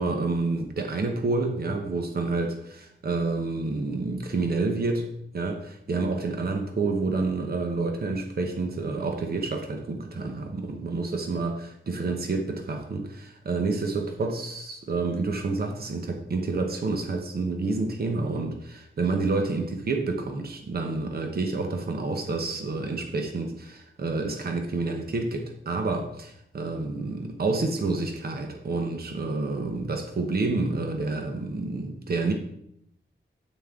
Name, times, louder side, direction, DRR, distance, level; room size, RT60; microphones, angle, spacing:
voice 1, 0.0-5.1 5.3-32.3, right 3 dB, 50° right, 1.0 m, -29 dB
9.4 x 8.4 x 3.7 m
wide cardioid pair, 165°, 20 cm